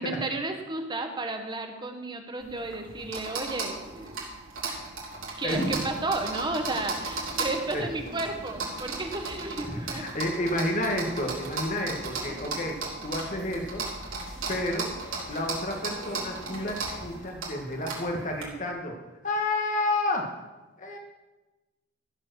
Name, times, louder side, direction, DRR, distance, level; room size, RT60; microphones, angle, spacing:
voice 1, 0.0-4.2 5.4-10.0 12.2-12.4, right 2 dB, 20° right, 5 dB, 1.2 m, -33 dB
sound 1, 2.4-18.4, right 3 dB, 80° right, 3.4 m, -36 dB
sound 2, 5.5-17.2, equal, 75° left, 4.9 m, -42 dB
voice 2, 9.6-13.9 14.5-14.9 15.3-19.0 19.2-20.3 20.8-21.0, left 1 dB, 40° left, 2 dB, 1.6 m, -30 dB
14.0 x 7.5 x 6.4 m, 1.1 s
head